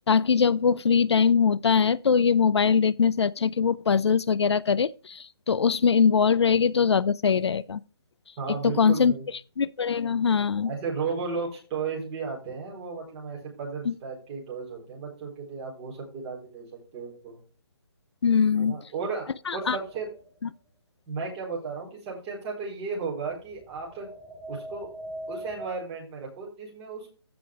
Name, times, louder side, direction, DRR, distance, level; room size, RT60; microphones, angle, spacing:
voice 1, 0.0-7.8 8.6-9.1 9.6-10.7 18.2-18.8 19.5-19.8 20.4-20.5, left 6 dB, 75° left, 0.6 m, -22 dB
voice 2, 8.4-9.3 10.6-16.7 16.9-17.4 18.5-19.3 19.5-20.1 21.1-24.1 24.5-24.9 25.3-27.1, right 5 dB, 15° right, 4.3 m, -34 dB
sound 1, 19.5-20.3 23.6-25.7, right 1 dB, ahead, 0.5 m, -40 dB
15.0 x 5.2 x 3.4 m
hypercardioid pair, 170°, 14 cm